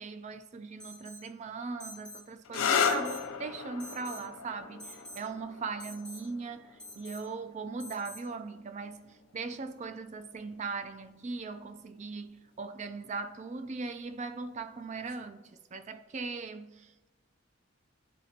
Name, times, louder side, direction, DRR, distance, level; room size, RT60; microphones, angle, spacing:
voice 1, 0.0-15.4 15.7-17.1, right 4 dB, 35° right, 0.4 m, -39 dB
Alarm, 0.8-1.3 1.8-2.3 2.8-3.3 3.8-4.3 4.8-5.3 5.8-6.2 6.8-7.2 7.8-8.2, equal, 5° left, 0.7 m, -47 dB
sound 1, 2.4-9.9 10.9-11.4 14.9-15.3, left 6 dB, 90° left, 0.5 m, -36 dB
11.0 x 4.1 x 2.8 m
head